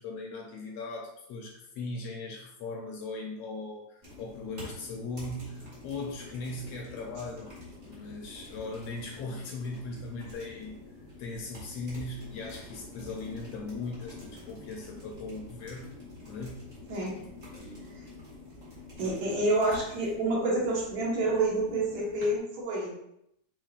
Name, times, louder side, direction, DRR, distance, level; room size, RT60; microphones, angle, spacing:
voice 1, 0.0-7.5 7.8-10.8 11.2-15.9 16.2-16.7 17.5-17.8 19.0-19.2, left 3 dB, 75° left, 0 dB, 1.5 m, -39 dB
sound 1, 4.0-22.4, left 2 dB, 35° right, 1.4 m, -47 dB
voice 2, 19.0-22.9, right 2 dB, 70° right, -4 dB, 2.6 m, -28 dB
6.8 x 3.0 x 2.4 m, 0.77 s
omnidirectional pair, 3.4 m